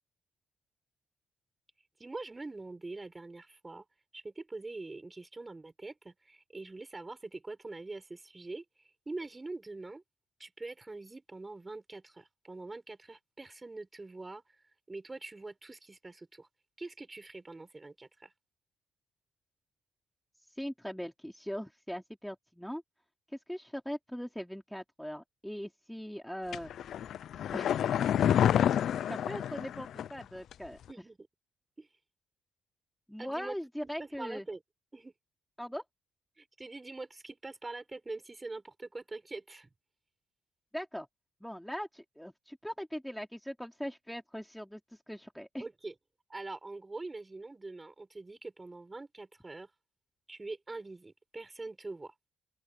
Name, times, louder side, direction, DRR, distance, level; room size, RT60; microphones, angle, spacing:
voice 1, 2.0-3.8 4.1-8.6 9.0-10.0 10.4-14.4 14.9-16.5 16.8-18.3 30.9-31.2 31.8-31.9 33.2-33.6 34.0-34.6 34.9-35.1 36.4-39.7 45.6-45.9 46.3-49.7 50.3-52.1, right 2 dB, 20° right, 6.6 m, -44 dB
voice 2, 20.5-22.8 23.3-26.7 27.5-27.8 29.1-30.8 33.1-34.5 35.6-35.8 40.7-41.1 41.4-45.6, equal, ahead, 3.3 m, -40 dB
sound 1, 26.5-30.2 30.5-30.6, left 10 dB, 70° left, 0.5 m, -28 dB
open air
cardioid pair, 90°, 0 cm